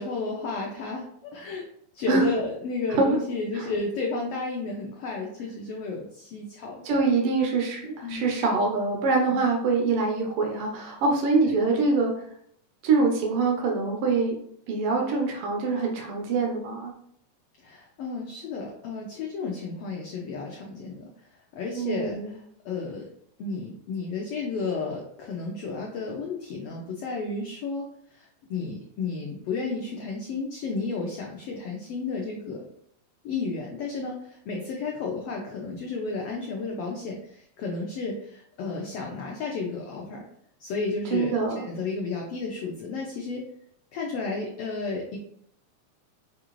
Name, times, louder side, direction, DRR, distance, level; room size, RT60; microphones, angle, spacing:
voice 1, 0.0-1.6 1.9-7.0 8.0-8.3 9.3-9.5 11.4-11.6 17.6-21.1 21.5-23.1 23.4-32.7 33.2-40.2 40.6-43.5 43.9-45.2, left 3 dB, 90° left, -1 dB, 1.3 m, -32 dB
voice 2, 6.8-12.1 12.8-14.4 14.7-16.9 21.7-22.3 41.1-41.6, right 4 dB, 90° right, 1 dB, 1.2 m, -24 dB
6.3 x 2.5 x 3.0 m, 0.68 s
omnidirectional pair, 3.5 m